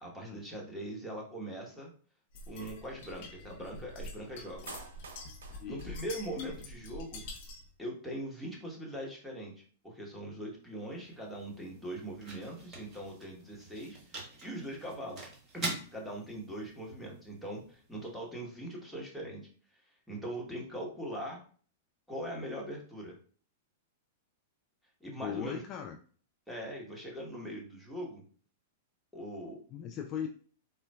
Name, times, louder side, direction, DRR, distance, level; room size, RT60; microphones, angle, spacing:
voice 1, 0.0-1.9 2.5-4.7 5.7-7.2 7.8-9.5 9.8-19.4 20.1-21.4 22.1-23.1 25.0-25.6 26.5-28.2 29.1-29.6, right 1 dB, ahead, -3 dB, 1.1 m, -41 dB
sound 1, 2.3-7.7, left 2 dB, 55° left, 0.7 m, -46 dB
Clapping, 4.7-6.7 6.9-7.0, right 5 dB, 80° right, 0.5 m, -50 dB
voice 2, 5.6-5.9 25.1-26.0 29.7-30.3, left 9 dB, 35° left, 3 dB, 0.3 m, -39 dB
sound 2, 10.6-18.7, right 2 dB, 30° right, 1.3 m, -46 dB
3.8 x 2.1 x 2.3 m, 0.43 s
hypercardioid pair, 115°, 0 cm